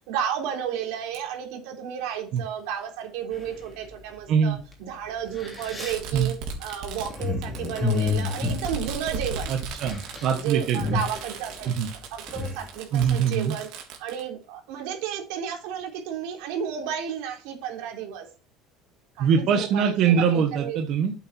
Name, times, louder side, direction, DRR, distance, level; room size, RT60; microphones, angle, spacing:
voice 1, 0.1-9.5 10.3-11.7 12.1-13.7 14.0-18.3 19.2-20.8, right 8 dB, 80° right, 2 dB, 3.7 m, -32 dB
Fireworks, 1.1-1.2 2.4-2.5 3.7-3.8 5.5-14.2, right 4 dB, 65° right, 3.4 m, -37 dB
sound 1, 3.3-4.0 4.7-4.8 5.2-9.4 9.7-10.3 10.6-12.7, left 4 dB, 10° left, 3.1 m, -30 dB
voice 2, 9.5-11.0 11.7-11.9 12.9-13.5 19.2-21.1, right 7 dB, 45° right, 5 dB, 1.3 m, -23 dB
8.5 x 8.3 x 4.3 m, 0.35 s
cardioid pair, 160°, 0 cm